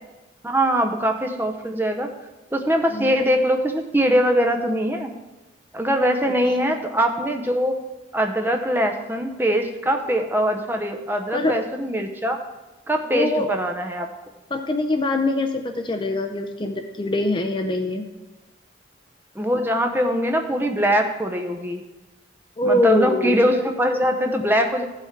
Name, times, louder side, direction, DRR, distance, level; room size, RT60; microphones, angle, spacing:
voice 1, 0.4-2.1 2.5-5.1 5.7-7.8 8.1-12.4 12.9-14.1 19.4-21.8 22.6-24.9, equal, 10° right, 4 dB, 0.7 m, -22 dB
voice 2, 13.1-13.5 14.5-18.0 22.6-23.4, left 1 dB, 25° left, 6 dB, 0.5 m, -23 dB
14.5 x 5.8 x 4.6 m, 1.1 s
head